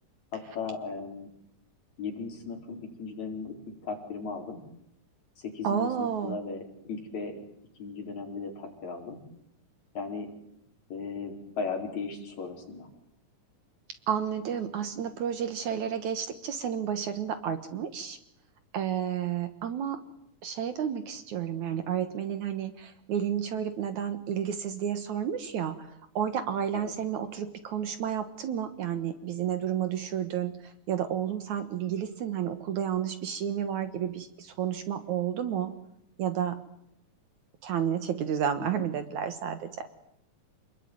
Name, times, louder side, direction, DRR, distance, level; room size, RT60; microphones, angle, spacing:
voice 1, 0.3-1.3 2.0-3.6 3.8-4.6 5.4-7.4 7.8-9.2 9.9-10.3 10.9-12.9 26.7-26.9 38.6-38.8, left 4 dB, 55° left, 1 dB, 5.7 m, -37 dB
voice 2, 5.6-6.4 14.1-18.2 18.7-20.0 20.4-25.9 26.2-35.7 36.2-36.6 37.6-39.9, right 9 dB, 65° right, 10 dB, 2.6 m, -31 dB
28.0 x 21.0 x 9.4 m, 0.78 s
omnidirectional pair, 3.8 m